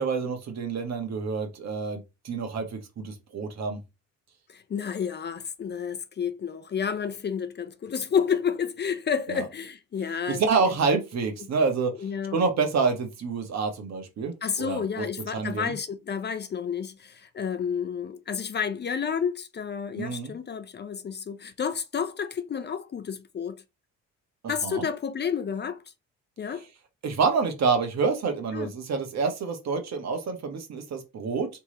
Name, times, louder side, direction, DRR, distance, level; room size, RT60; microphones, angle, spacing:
voice 1, 0.0-3.8 9.3-9.4 10.3-15.0 15.3-15.7 19.9-20.4 24.6-24.9 27.0-31.5, right 4 dB, 60° right, 1.4 m, -28 dB
voice 2, 4.5-10.4 12.0-12.4 14.4-23.6 24.5-25.8 26.4-26.7 28.5-28.7, left 7 dB, 35° left, 0.5 m, -30 dB
3.4 x 3.1 x 4.2 m
cardioid pair, 90°, 30 cm